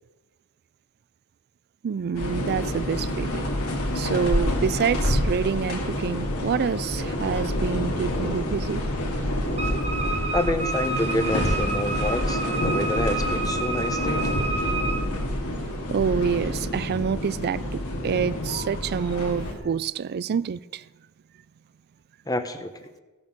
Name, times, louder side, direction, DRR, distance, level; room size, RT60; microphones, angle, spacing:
voice 1, 1.8-3.5 3.9-8.8 15.9-20.8, right 6 dB, 45° right, 0.4 m, -27 dB
sound 1, 2.1-19.5, left 1 dB, 75° left, 2.4 m, -27 dB
Wind instrument woodwind instrument, 9.6-15.1, right 3 dB, 30° right, 0.9 m, -30 dB
voice 2, 10.3-14.5 22.3-22.9, left 1 dB, 15° left, 0.9 m, -28 dB
16.0 x 7.4 x 6.1 m
head